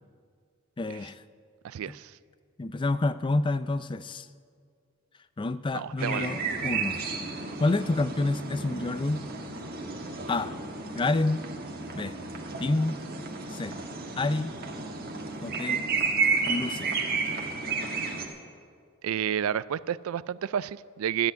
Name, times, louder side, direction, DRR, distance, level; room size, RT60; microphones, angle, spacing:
voice 1, 0.8-1.2 2.6-4.3 5.4-7.0 7.6-9.3 10.3-10.5 10.9-11.4 11.9-12.1 12.6-13.0 13.5-13.8 14.2-14.5 15.4-15.8 16.5-16.9, left 2 dB, 20° left, 14 dB, 0.4 m, -28 dB
voice 2, 1.6-2.1 5.7-6.3 19.0-21.3, right 9 dB, 75° right, 19 dB, 0.3 m, -30 dB
sound 1, 6.0-18.3, right 4 dB, 45° right, 1.5 m, -32 dB
13.0 x 8.1 x 9.1 m, 2.2 s
head